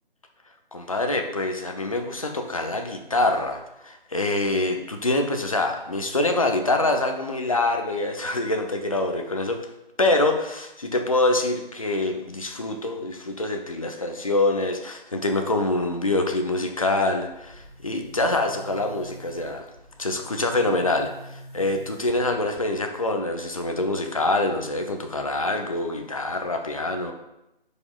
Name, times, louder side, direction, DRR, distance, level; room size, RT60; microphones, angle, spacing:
voice 1, 0.7-9.6 10.0-19.6 20.0-27.1, left 2 dB, 35° left, 4 dB, 0.6 m, -25 dB
Boom, 17.3-23.1, equal, 85° left, 1.9 m, -46 dB
9.2 x 5.0 x 2.3 m, 0.89 s
hypercardioid pair, 175°, 29 cm